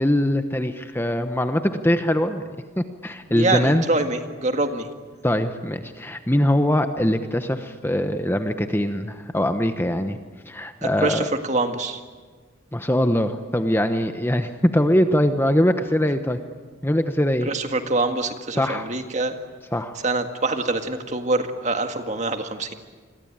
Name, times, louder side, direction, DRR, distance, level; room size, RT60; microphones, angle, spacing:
voice 1, 0.0-2.4 2.8-3.8 5.2-10.2 10.5-11.2 12.7-16.4 16.8-17.5 18.6-18.9 19.7-20.0, left 1 dB, 10° left, 8 dB, 1.0 m, -22 dB
voice 2, 3.3-4.9 10.8-12.0 17.5-19.4 20.0-22.7, right 2 dB, 35° right, 6 dB, 1.9 m, -25 dB
29.0 x 22.0 x 8.9 m, 1.4 s
head